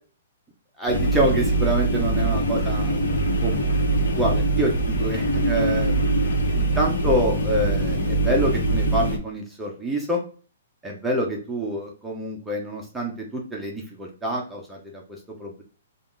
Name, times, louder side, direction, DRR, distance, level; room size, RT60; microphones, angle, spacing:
voice 1, 0.8-3.0 3.4-10.2 10.8-15.0 15.4-15.6, right 1 dB, 5° right, -3 dB, 0.5 m, -27 dB
sound 1, 0.9-9.2, right 2 dB, 75° left, 0.9 m, -23 dB
3.8 x 2.3 x 3.5 m, 0.39 s
hypercardioid pair, 175°, 0 cm